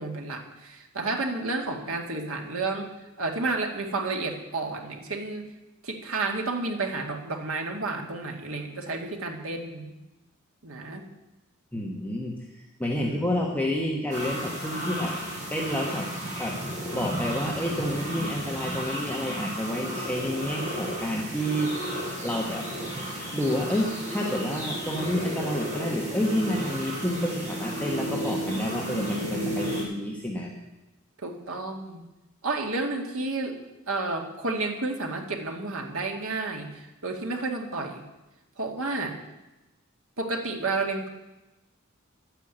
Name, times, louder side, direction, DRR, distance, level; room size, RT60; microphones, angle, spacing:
voice 1, 0.0-2.9 3.2-5.5 5.8-9.9 10.6-11.0 12.9-13.4 31.2-32.0 32.4-33.6 33.9-38.0 38.6-39.2 40.2-41.1, right 3 dB, 70° right, 2 dB, 2.1 m, -31 dB
voice 2, 11.7-15.1 15.5-16.1 16.4-16.6 16.9-22.7 23.3-30.5, left 1 dB, 10° left, -2 dB, 1.4 m, -29 dB
sound 1, 14.1-29.8, right 1 dB, 35° right, 6.0 m, -33 dB
11.5 x 9.2 x 9.0 m, 1.0 s
head